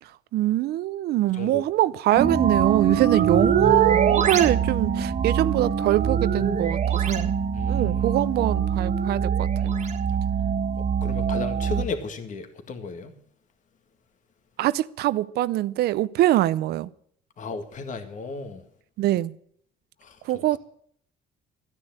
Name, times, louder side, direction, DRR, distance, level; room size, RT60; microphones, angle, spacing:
voice 1, 0.3-7.4 7.7-9.7 14.6-16.9 19.0-19.3 20.2-20.6, right 15 dB, 70° right, 0.6 m, -23 dB
sound 1, 2.1-11.8, right 6 dB, 45° right, 1.8 m, -24 dB
voice 2, 7.5-8.2 11.0-13.1 17.4-18.6 20.0-20.2, left 4 dB, 50° left, 2.0 m, -34 dB
13.5 x 9.8 x 7.7 m
cardioid pair, 110°, 17 cm